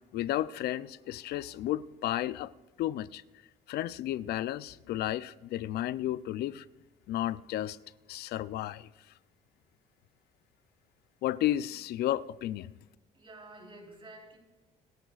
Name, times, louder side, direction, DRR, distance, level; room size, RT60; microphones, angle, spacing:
voice 1, 0.1-2.5 2.8-3.2 3.7-6.6 7.1-7.8 8.1-8.9 11.2-12.7, left 13 dB, 75° left, 0.5 m, -32 dB
voice 2, 13.1-14.4, right 2 dB, 30° right, 4.0 m, -50 dB
27.0 x 12.5 x 2.4 m
cardioid pair, 110°, 17 cm